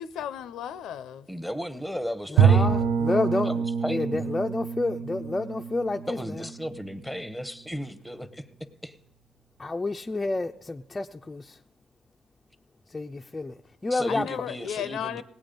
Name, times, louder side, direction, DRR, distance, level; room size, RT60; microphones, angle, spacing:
voice 1, 0.0-1.3 14.1-15.2, left 9 dB, 80° left, 0.5 m, -34 dB
voice 2, 1.3-2.8 3.4-4.3 6.1-8.5 8.8-8.9 13.9-15.2, equal, ahead, 0.8 m, -35 dB
voice 3, 2.3-3.5 3.9-6.5 9.6-11.5 12.9-13.5 13.8-14.3, left 2 dB, 20° left, 0.4 m, -29 dB
Bowed string instrument, 2.4-7.2, right 7 dB, 90° right, 0.6 m, -25 dB
18.5 x 8.3 x 5.2 m
cardioid pair, 90°, 0 cm